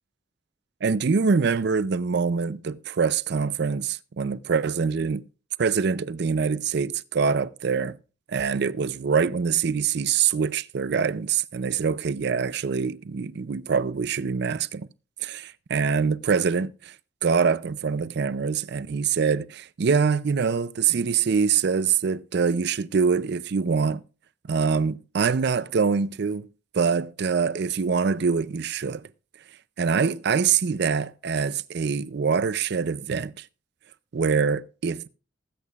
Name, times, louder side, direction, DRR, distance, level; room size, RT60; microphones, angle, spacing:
voice 1, 0.8-5.3 5.6-8.0 8.3-14.9 15.2-16.9 17.2-24.0 24.5-26.5 26.7-29.0 29.8-33.5 34.1-35.1, right 5 dB, 60° right, 0.5 m, -24 dB
20.0 x 8.4 x 2.4 m
head